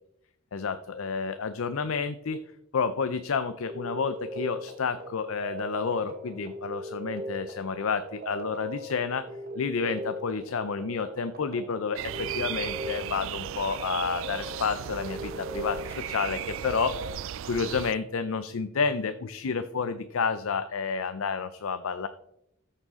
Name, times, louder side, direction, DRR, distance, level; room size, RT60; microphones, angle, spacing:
voice 1, 0.5-2.4 2.7-9.3 9.6-16.9 17.4-22.1, left 5 dB, 70° left, 11 dB, 0.5 m, -30 dB
sound 1, 3.6-17.1, equal, 45° right, 1.3 m, -39 dB
sound 2, 12.0-17.9, right 10 dB, 65° right, 0.3 m, -36 dB
13.5 x 6.6 x 3.6 m, 0.79 s
head